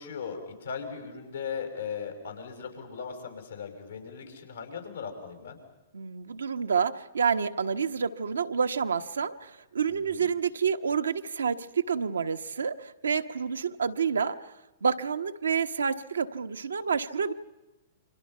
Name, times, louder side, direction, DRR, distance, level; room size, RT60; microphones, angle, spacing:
voice 1, 0.0-5.6 9.9-10.3, left 6 dB, 80° left, 4 dB, 5.8 m, -38 dB
voice 2, 5.9-14.5 14.8-17.3, right 6 dB, 85° right, 8 dB, 1.2 m, -28 dB
29.0 x 25.0 x 5.6 m, 1.0 s
hypercardioid pair, 115°, 0 cm